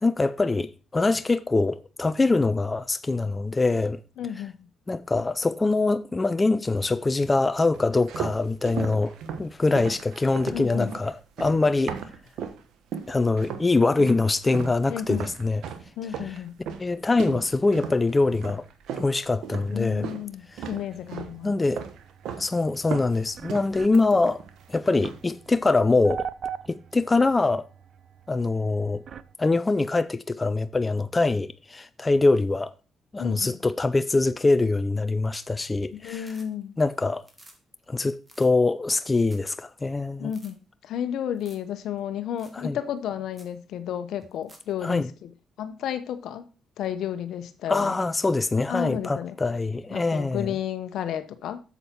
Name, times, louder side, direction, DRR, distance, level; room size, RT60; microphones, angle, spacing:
voice 1, 0.0-4.0 4.9-12.0 13.1-15.6 16.2-16.4 16.8-18.6 19.0-20.1 20.5-20.6 21.4-21.8 22.4-24.4 24.7-26.3 26.7-27.7 28.3-29.0 29.4-32.7 33.1-36.3 36.8-37.2 37.9-40.3 42.5-42.8 44.8-45.1 47.7-50.5, left 3 dB, 20° left, 0.5 m, -24 dB
voice 2, 4.2-4.5 10.5-10.9 14.9-15.3 16.0-16.5 19.7-21.5 33.2-33.6 36.0-36.7 40.2-45.3 45.6-46.4 46.8-48.0 48.7-49.3 49.9-51.6, left 9 dB, 75° left, 0.9 m, -32 dB
sound 1, 7.7-12.6 12.9-13.7 14.0-20.3 20.6-21.4 21.7-22.5 22.7-24.6 24.9-25.3, right 7 dB, 80° right, 1.2 m, -36 dB
sound 2, 20.4-29.3, right 8 dB, 55° right, 0.5 m, -42 dB
sound 3, 35.1-35.6 35.9-36.8 37.1-37.6 37.9-38.0 38.2-38.5 38.9-39.0 39.2-39.5 39.8-39.9 40.2-40.5 41.3-41.7 42.0-42.1 42.4-42.6 43.0-43.1 43.3-43.5 44.2-44.7 46.9-47.0, right 1 dB, 15° right, 2.4 m, -53 dB
8.0 x 7.2 x 4.5 m
cardioid pair, 90°, 0 cm